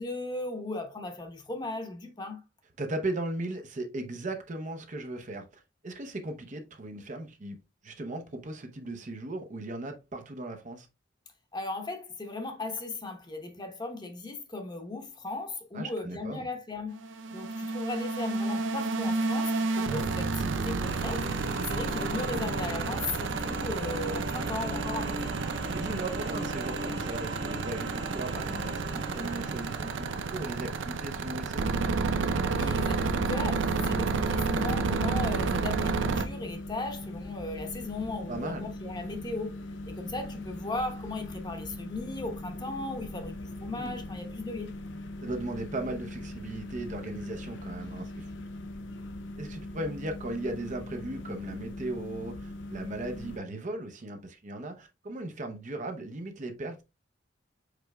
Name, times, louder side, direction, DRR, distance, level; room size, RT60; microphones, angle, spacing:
voice 1, 0.0-2.4 11.5-17.0 17.3-21.3 21.6-25.4 32.5-44.7, left 2 dB, 25° left, 0.9 m, -37 dB
voice 2, 2.8-10.9 15.7-16.5 22.3-22.6 25.5-31.7 38.3-38.7 43.7-44.0 45.2-48.3 49.4-56.8, right 2 dB, 40° right, 0.7 m, -37 dB
sound 1, 16.9-36.3, right 4 dB, 90° right, 0.5 m, -30 dB
sound 2, 20.8-31.6, right 1 dB, 65° right, 1.4 m, -39 dB
sound 3, 33.8-53.4, left 1 dB, 80° left, 0.7 m, -41 dB
4.9 x 4.6 x 2.2 m
head